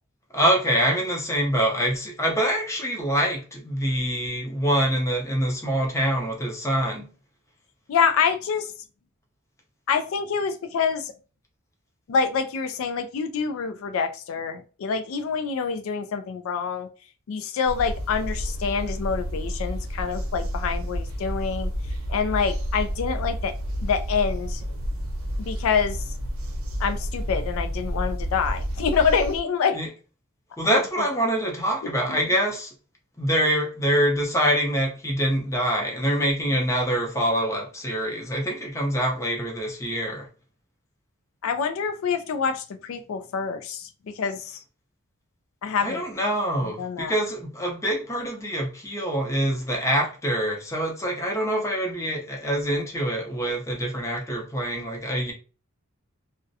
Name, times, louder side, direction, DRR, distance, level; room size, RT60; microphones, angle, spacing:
voice 1, 0.3-7.1 29.7-29.9 30.6-32.7 33.2-40.3 45.7-55.3, equal, 15° left, 0.6 m, -25 dB
voice 2, 7.9-8.7 9.9-11.1 12.1-16.9 17.3-21.7 22.1-23.5 23.8-24.6 25.4-26.0 26.8-29.8 32.1-32.2 41.4-44.6 45.6-46.0 46.6-47.1, left 6 dB, 70° left, 0.3 m, -26 dB
sound 1, 17.7-29.4, equal, 85° right, 0.6 m, -30 dB
2.4 x 2.1 x 2.6 m
head